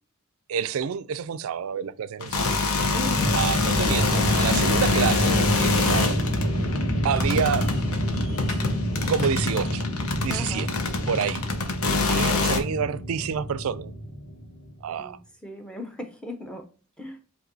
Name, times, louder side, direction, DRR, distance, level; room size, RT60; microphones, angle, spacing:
voice 1, 0.5-2.6 3.4-6.2 6.7-7.7 9.0-9.8 10.2-10.7 11.1-11.4 12.1-13.9 14.8-15.2, right 7 dB, 75° right, 0.3 m, -28 dB
sound 1, 2.2-12.6, left 4 dB, 85° left, 0.9 m, -26 dB
sound 2, 2.5-14.8, equal, 20° left, 1.1 m, -28 dB
voice 2, 2.9-3.3 10.3-10.7 12.1-12.6 15.0-15.2 15.4-16.7 17.0-17.2, left 1 dB, 5° left, 0.6 m, -37 dB
sound 3, 5.7-9.8, right 1 dB, 55° left, 2.3 m, -42 dB
7.7 x 2.7 x 2.6 m
head